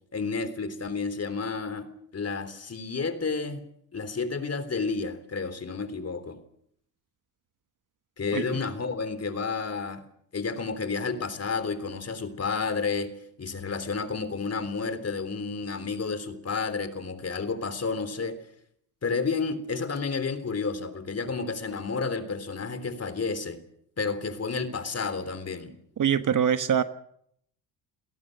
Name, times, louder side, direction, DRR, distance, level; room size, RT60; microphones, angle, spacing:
voice 1, 0.1-6.4 8.2-10.0 10.3-13.1 13.4-18.4 19.0-23.6 24.0-25.7, left 4 dB, 30° left, 12 dB, 3.5 m, -31 dB
voice 2, 26.0-26.8, right 8 dB, 40° right, 11 dB, 1.3 m, -23 dB
28.5 x 17.5 x 6.7 m, 0.70 s
hypercardioid pair, 70°, 48 cm